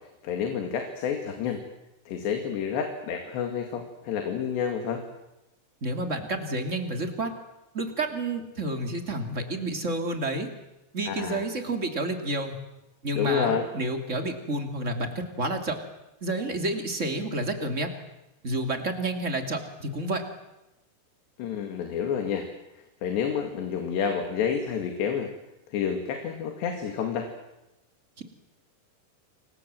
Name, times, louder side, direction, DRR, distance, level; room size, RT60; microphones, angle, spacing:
voice 1, 0.2-1.6 2.1-5.0 11.1-11.4 13.2-13.7 21.4-22.5 23.0-25.3 25.7-27.3, left 7 dB, 75° left, 4 dB, 4.4 m, -29 dB
voice 2, 5.8-7.3 7.7-10.5 10.9-12.6 13.0-15.8 16.2-17.9 18.4-20.2 28.2-28.3, right 2 dB, 20° right, 5 dB, 2.2 m, -30 dB
29.5 x 24.0 x 7.7 m, 0.96 s
omnidirectional pair, 5.0 m